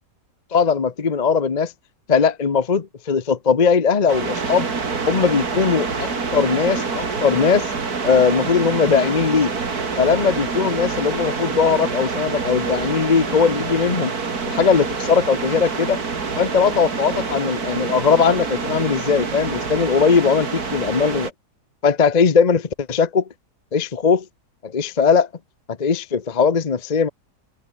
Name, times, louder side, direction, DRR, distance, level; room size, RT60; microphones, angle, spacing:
voice 1, 0.5-1.7 2.1-4.7 5.0-7.7 8.0-9.5 10.0-14.1 14.4-16.0 16.4-20.5 20.7-21.3 21.8-23.3 23.7-24.2 24.6-25.3 25.7-27.1, left 5 dB, 30° left, 0.9 m, -19 dB
sound 1, 4.1-21.3, right 4 dB, 65° right, 3.1 m, -26 dB
omnidirectional pair, 1.8 m